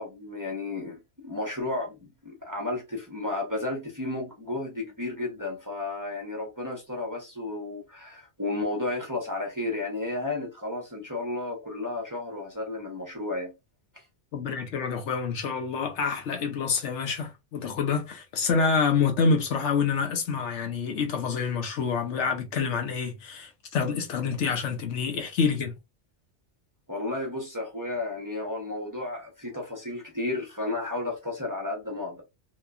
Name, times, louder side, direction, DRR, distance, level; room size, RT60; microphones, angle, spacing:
voice 1, 0.0-13.5 13.9-14.0 26.9-32.2, left 2 dB, 20° right, 0.8 m, -33 dB
voice 2, 14.3-25.7, left 5 dB, 75° left, 1.0 m, -27 dB
2.9 x 2.2 x 2.3 m
omnidirectional pair, 1.2 m